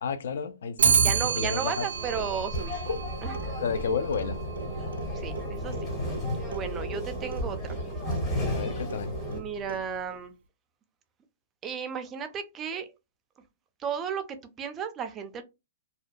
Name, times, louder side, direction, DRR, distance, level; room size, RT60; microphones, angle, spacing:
voice 1, 0.0-1.9 2.9-3.0 3.6-4.4 8.5-9.1, left 6 dB, 70° left, 0.4 m, -31 dB
Clock, 0.8-10.2, right 6 dB, 90° right, 0.4 m, -31 dB
voice 2, 1.0-2.8 3.2-3.5 5.1-6.1 6.5-7.7 9.3-10.3 11.6-12.9 13.8-15.4, right 7 dB, 15° right, 0.3 m, -34 dB
sound 1, 1.9-9.4, equal, 15° left, 0.6 m, -33 dB
2.5 x 2.1 x 2.3 m
hypercardioid pair, 165°, 0 cm